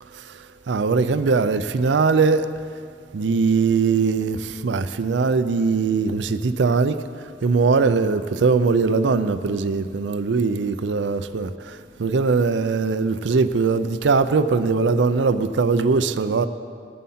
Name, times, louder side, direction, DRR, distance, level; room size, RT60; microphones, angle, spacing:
voice 1, 0.1-2.5 3.1-16.5, right 4 dB, 80° right, 0.5 m, -21 dB
20.0 x 7.5 x 4.2 m
head